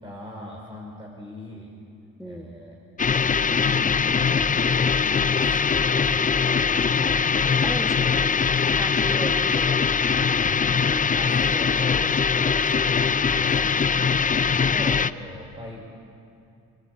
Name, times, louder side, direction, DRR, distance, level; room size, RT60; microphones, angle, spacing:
voice 1, 0.0-1.7 2.3-2.7 3.4-6.2 11.1-13.9 14.7-15.8, left 1 dB, 15° right, -3 dB, 5.5 m, -40 dB
voice 2, 2.2-2.5 6.5-6.8 7.6-10.1 10.9-11.6, right 1 dB, ahead, 5 dB, 1.5 m, -37 dB
sound 1, 3.0-15.1, left 6 dB, 25° left, 0.6 m, -22 dB
26.0 x 17.5 x 8.6 m, 2.6 s
cardioid pair, 90°, 30 cm